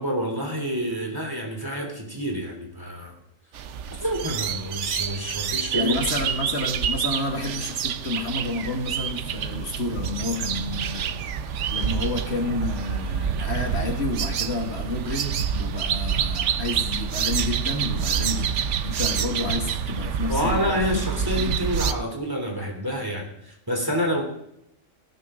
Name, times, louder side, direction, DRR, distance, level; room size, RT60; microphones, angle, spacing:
voice 1, 0.0-3.1 4.0-5.9 20.3-24.2, equal, 15° right, 1 dB, 3.2 m, -28 dB
sound 1, 3.5-21.9, right 8 dB, 70° right, 1.0 m, -27 dB
voice 2, 5.7-21.5, left 2 dB, 55° left, 2 dB, 2.1 m, -30 dB
17.5 x 11.5 x 3.8 m, 0.77 s
omnidirectional pair, 1.3 m